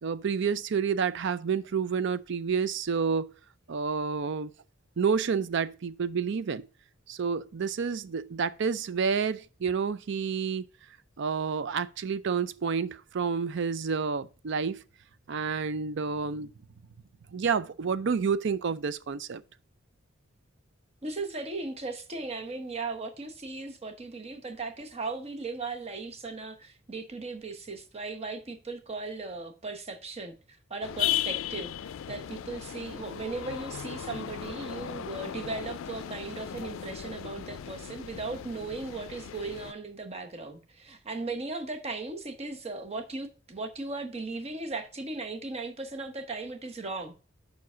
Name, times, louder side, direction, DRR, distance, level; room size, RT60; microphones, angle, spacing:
voice 1, 0.0-3.3 3.7-4.5 5.0-6.7 7.1-10.7 11.2-14.8 15.3-16.5 17.3-19.4, right 6 dB, 60° right, 0.5 m, -29 dB
voice 2, 21.0-30.3 30.7-47.1, right 3 dB, 30° right, 0.9 m, -37 dB
sound 1, 30.8-39.7, left 10 dB, 85° left, 0.4 m, -36 dB
5.3 x 4.7 x 6.0 m
head